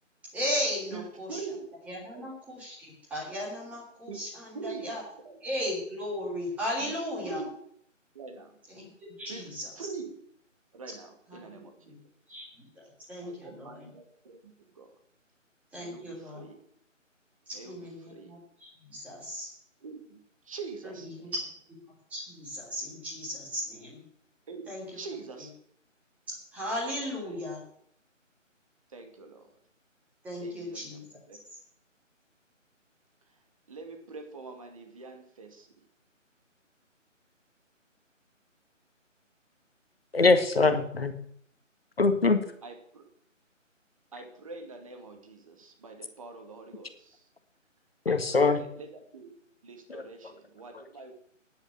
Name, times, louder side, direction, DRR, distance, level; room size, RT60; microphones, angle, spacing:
voice 1, 0.3-1.4 1.9-5.0 5.4-7.4 8.7-8.9 9.2-9.7 11.3-11.4 11.9-12.0 12.3-13.9 15.7-16.4 17.5-19.5 20.8-21.3 22.1-24.0 24.7-24.8 26.5-27.6 30.2-31.0 31.5-31.6, left 1 dB, 5° right, -5 dB, 3.1 m, -36 dB
voice 2, 0.9-1.7 2.1-2.2 4.1-4.2 4.5-5.0 5.2-5.4 6.8-6.9 7.2-7.6 8.1-8.6 9.3-9.5 9.8-10.1 10.7-12.0 13.2-14.0 14.4-14.9 15.8-16.6 17.5-18.4 19.8-21.3 24.5-25.5 27.1-27.4 28.9-29.5 30.4-31.4 33.7-35.7 42.6-43.0 44.1-47.3 48.1-49.3 49.6-51.1, right 4 dB, 25° right, 4 dB, 2.3 m, -44 dB
voice 3, 40.1-41.1 42.0-42.4 48.1-48.6 49.9-50.0, left 3 dB, 50° left, 9 dB, 1.8 m, -22 dB
10.5 x 8.9 x 8.6 m, 0.65 s
figure-of-eight pair, 155°, 39 cm